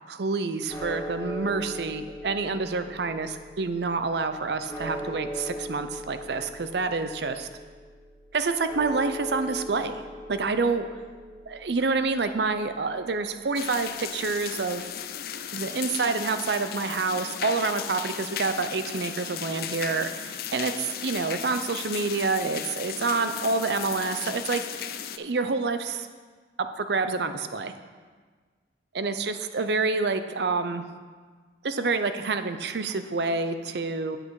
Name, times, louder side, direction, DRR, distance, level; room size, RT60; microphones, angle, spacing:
voice 1, 0.1-7.5 8.3-10.0 10.3-10.9 11.5-14.9 15.5-24.9 25.2-26.1 26.6-27.7 28.9-30.8 31.6-34.2, right 4 dB, 70° right, 10 dB, 0.6 m, -28 dB
sound 1, 0.7-14.9, equal, 15° left, 1.0 m, -40 dB
sound 2, 13.5-25.2, left 9 dB, 55° left, 0.4 m, -36 dB
8.4 x 7.7 x 4.7 m, 1.5 s
head